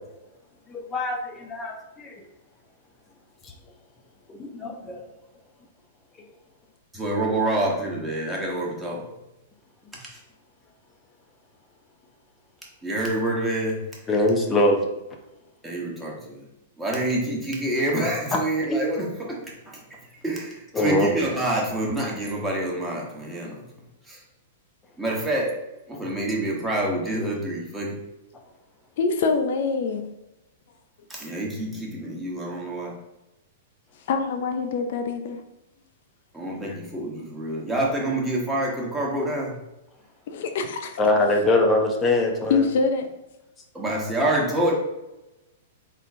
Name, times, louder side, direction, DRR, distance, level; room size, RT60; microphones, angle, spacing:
voice 1, 0.7-2.2 4.3-5.0 14.1-14.8 20.7-21.1 41.0-42.6, left 2 dB, 20° left, 2 dB, 0.8 m, -22 dB
voice 2, 6.9-9.0 10.0-10.2 12.8-13.9 15.6-16.4 16.8-23.6 24.1-24.2 25.0-25.6 25.9-28.0 31.1-32.9 36.3-39.6 43.7-44.7, right 1 dB, 10° right, -3 dB, 1.2 m, -27 dB
voice 3, 29.0-30.1 34.1-35.4 36.7-36.8 40.3-41.0 42.5-43.0, left 4 dB, 60° left, 6 dB, 0.5 m, -25 dB
3.7 x 3.7 x 2.7 m, 0.96 s
hypercardioid pair, 110°, 0 cm